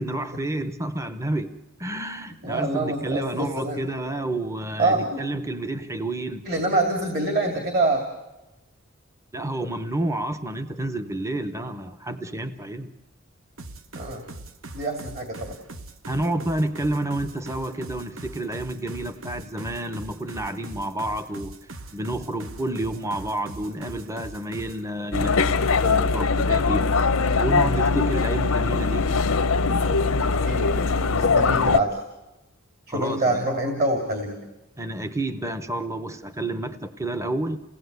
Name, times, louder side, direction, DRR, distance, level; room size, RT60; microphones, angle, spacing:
voice 1, 0.0-6.4 9.3-12.9 16.1-21.5 21.9-26.8 27.4-29.1 32.9-33.4 34.8-37.6, right 1 dB, 15° right, 10 dB, 0.7 m, -30 dB
voice 2, 2.4-3.8 4.8-5.2 6.5-8.0 13.9-14.2 14.7-15.5 30.4-30.7 31.1-32.0 32.9-34.4, right 2 dB, 45° right, 3 dB, 2.6 m, -25 dB
sound 1, 13.6-24.8, right 2 dB, 70° right, 1.1 m, -41 dB
sound 2, 25.1-31.8, left 4 dB, 80° left, 0.8 m, -21 dB
29.0 x 18.0 x 8.1 m, 1.1 s
head